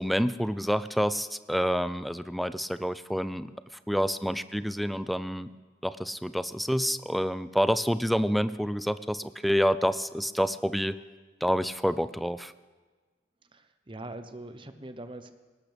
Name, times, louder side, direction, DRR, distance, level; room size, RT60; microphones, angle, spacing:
voice 1, 0.0-3.5 3.9-5.5 5.8-10.9 11.4-12.5, equal, ahead, 13 dB, 0.4 m, -28 dB
voice 2, 13.5-15.3, right 2 dB, 30° right, 9 dB, 0.8 m, -42 dB
20.0 x 18.0 x 3.4 m, 1.4 s
head